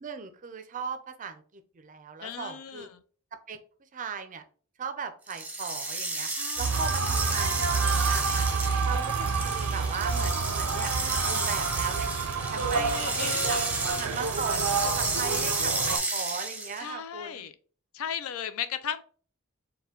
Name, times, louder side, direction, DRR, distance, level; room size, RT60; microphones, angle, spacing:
voice 1, 0.0-2.9 3.3-3.6 3.9-4.4 4.8-6.3 6.6-8.5 8.9-13.6 14.0-17.5, right 5 dB, 40° right, 9 dB, 0.4 m, -38 dB
voice 2, 2.2-2.9 6.3-6.8 12.7-13.7 16.8-17.5 17.9-19.0, left 8 dB, 70° left, 12 dB, 0.4 m, -36 dB
sound 1, 5.3-16.9, right 3 dB, 5° right, 0.7 m, -32 dB
sound 2, 6.6-16.0, right 5 dB, 85° right, 0.5 m, -29 dB
sound 3, 7.3-13.9, equal, 50° left, 1.3 m, -46 dB
4.3 x 2.2 x 3.6 m, 0.42 s
head